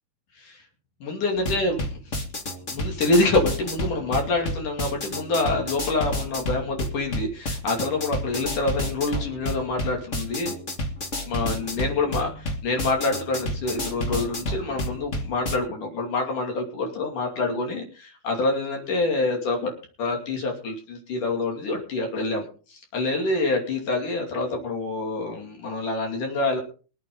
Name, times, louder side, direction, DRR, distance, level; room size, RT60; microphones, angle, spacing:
voice 1, 1.0-1.9 2.7-10.6 11.3-19.7 20.0-26.6, left 2 dB, 60° left, 2 dB, 3.9 m, -26 dB
sound 1, 1.4-15.5, left 1 dB, 35° left, 1.1 m, -30 dB
23.5 x 8.7 x 3.9 m, 0.37 s
omnidirectional pair, 4.3 m